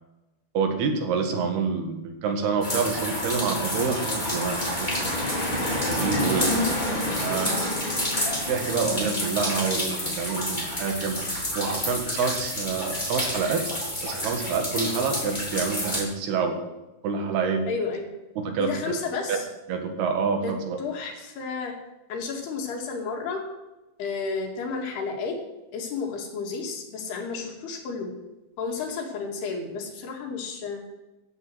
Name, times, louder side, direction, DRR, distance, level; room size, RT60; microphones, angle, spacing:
voice 1, 0.6-5.1 5.8-6.5 7.2-7.6 8.5-11.2 11.6-13.7 14.0-16.6 17.0-17.7 18.5-18.7 19.3-19.4 19.7-20.8, right 5 dB, 80° right, 5 dB, 3.8 m, -27 dB
sound 1, 2.6-16.0, left 1 dB, 10° left, 3.5 m, -28 dB
voice 2, 17.7-18.1 18.6-19.5 20.4-20.5 20.8-21.7 22.1-23.4 24.0-25.4 25.7-28.1 28.6-30.8, left 4 dB, 90° left, 1 dB, 4.3 m, -32 dB
14.5 x 7.7 x 7.9 m, 1.0 s
omnidirectional pair, 4.5 m